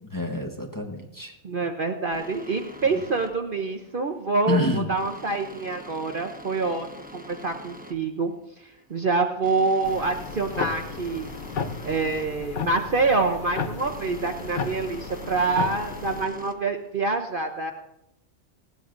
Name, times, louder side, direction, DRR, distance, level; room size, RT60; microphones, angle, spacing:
voice 1, 0.0-1.3 4.5-4.9, left 2 dB, 15° left, 0 dB, 1.1 m, -27 dB
voice 2, 1.4-8.3 8.6-11.3 11.8-17.7, right 3 dB, 45° right, 4 dB, 0.9 m, -26 dB
sound 1, 2.1-17.1, equal, 5° right, 0.9 m, -45 dB
sound 2, 9.8-16.2, left 5 dB, 45° left, 0.7 m, -34 dB
19.0 x 15.5 x 2.6 m, 0.87 s
omnidirectional pair, 1.4 m